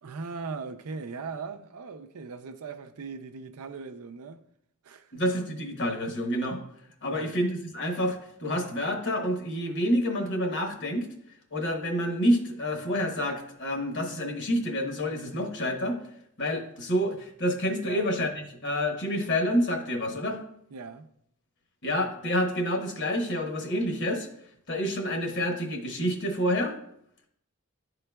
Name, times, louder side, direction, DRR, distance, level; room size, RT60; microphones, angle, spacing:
voice 1, 0.0-4.4 4.8-5.1 7.1-7.4 17.8-18.1 20.7-21.1, right 4 dB, 80° right, 0.5 m, -39 dB
voice 2, 5.1-6.6 7.0-11.1 11.5-16.0 16.4-20.4 21.8-24.3 24.7-26.7, equal, 55° left, 1.1 m, -28 dB
11.0 x 3.8 x 2.3 m
head